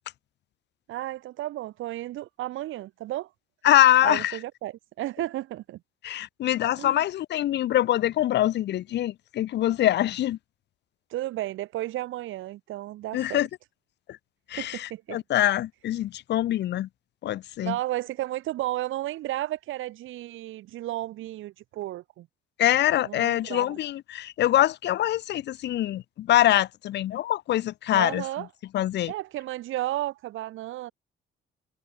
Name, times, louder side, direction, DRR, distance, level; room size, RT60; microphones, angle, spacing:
voice 1, 0.9-3.3 4.0-5.8 6.8-7.0 11.1-13.4 14.6-15.2 17.6-22.3 23.0-23.8 27.9-28.5 29.1-30.9, right 15 dB, 80° right, 1.0 m, -33 dB
voice 2, 3.6-4.4 6.0-10.4 13.1-13.5 14.5-16.9 17.2-17.8 22.6-28.2 28.7-29.1, left 13 dB, 60° left, 0.5 m, -24 dB
cardioid pair, 90°, 20 cm